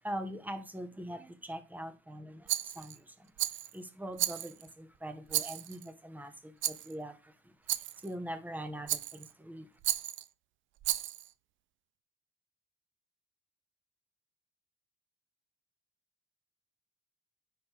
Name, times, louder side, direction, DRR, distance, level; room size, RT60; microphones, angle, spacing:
voice 1, 0.0-9.8, equal, 10° right, 1.2 m, -43 dB
Rattle, 2.5-3.0 3.4-3.8 4.2-4.7 5.3-5.9 6.6-6.9 7.7-8.1 8.9-9.3 9.8-10.3 10.8-11.3, right 13 dB, 75° right, 0.5 m, -34 dB
9.5 x 4.3 x 3.5 m
cardioid pair, 90°, 20 cm